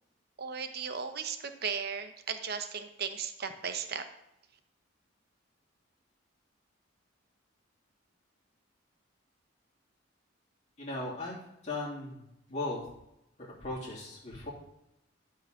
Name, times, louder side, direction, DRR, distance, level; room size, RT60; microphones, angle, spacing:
voice 1, 0.4-4.1, right 6 dB, 50° right, 8 dB, 0.9 m, -36 dB
voice 2, 10.8-11.4 11.6-12.9 13.4-14.5, left 2 dB, 35° left, -7 dB, 3.0 m, -37 dB
13.0 x 4.8 x 6.5 m, 0.83 s
head